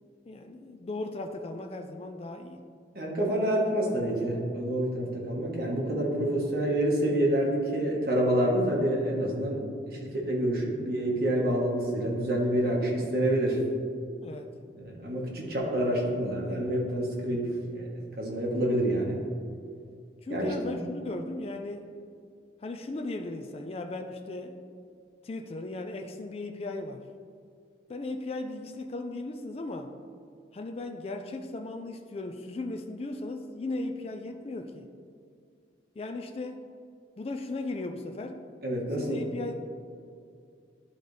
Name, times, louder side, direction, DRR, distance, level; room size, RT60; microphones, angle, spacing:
voice 1, 0.3-2.6 14.2-14.5 20.2-21.9 22.6-24.6 25.2-27.0 27.9-29.9 30.5-34.9 36.0-36.6 37.2-38.4 39.0-39.5, left 2 dB, 35° left, 4 dB, 0.3 m, -37 dB
voice 2, 2.9-9.6 9.9-13.6 14.8-17.9 18.2-19.2 20.3-20.5 38.6-39.2, right 1 dB, 55° right, -2 dB, 1.4 m, -27 dB
11.0 x 4.0 x 3.3 m, 2.3 s
head